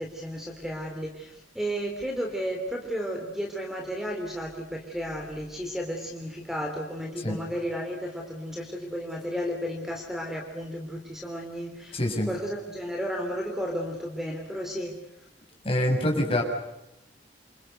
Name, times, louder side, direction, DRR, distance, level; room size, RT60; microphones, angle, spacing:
voice 1, 0.0-12.0 12.2-15.0, equal, ahead, 2 dB, 3.4 m, -33 dB
voice 2, 11.9-12.3 15.6-16.4, left 1 dB, 35° left, 1 dB, 7.2 m, -25 dB
28.5 x 27.0 x 6.8 m, 0.87 s
head